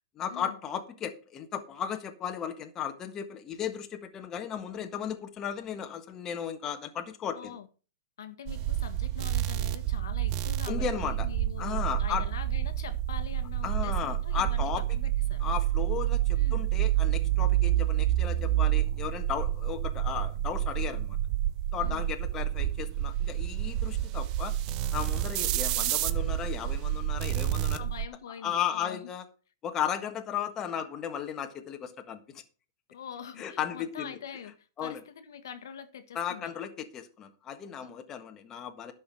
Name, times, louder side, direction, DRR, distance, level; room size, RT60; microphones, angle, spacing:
voice 1, 0.1-7.5 10.7-11.3 11.6-12.2 13.6-15.0 15.4-21.2 21.7-24.6 24.9-27.8 28.3-29.2 29.6-32.4 33.4-34.2 34.8-35.0 36.1-38.9, left 8 dB, 25° left, 1.5 m, -35 dB
voice 2, 7.3-7.7 8.2-15.4 16.3-16.6 21.8-22.1 27.8-29.1 32.9-36.6 37.8-37.9, left 8 dB, 75° left, 1.5 m, -44 dB
sound 1, 8.5-28.1, right 13 dB, 35° right, 0.8 m, -29 dB
11.5 x 6.4 x 6.4 m
hypercardioid pair, 135°, 2 cm